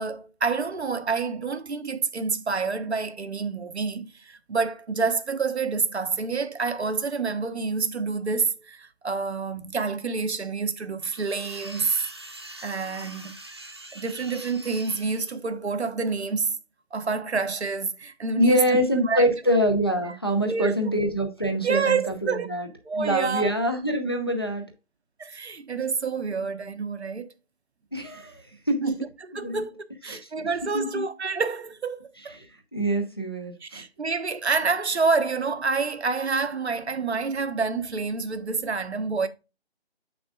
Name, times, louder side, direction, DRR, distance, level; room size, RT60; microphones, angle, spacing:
voice 1, 0.0-12.0 12.6-13.4 13.9-16.6 16.9-18.6 19.0-19.2 20.4-20.7 21.6-22.5 22.8-23.5 25.2-27.3 28.8-32.3 33.6-39.3, right 4 dB, 80° right, 1.1 m, -28 dB
sound 1, 11.0-15.3, right 1 dB, 25° right, 0.9 m, -43 dB
voice 2, 18.4-22.7 22.9-24.7 27.9-28.8 29.3-29.7 30.1-30.3 30.7-31.1 32.4-32.5 32.7-33.8, equal, 25° left, 0.7 m, -25 dB
7.3 x 6.0 x 2.3 m
figure-of-eight pair, 175°, 33 cm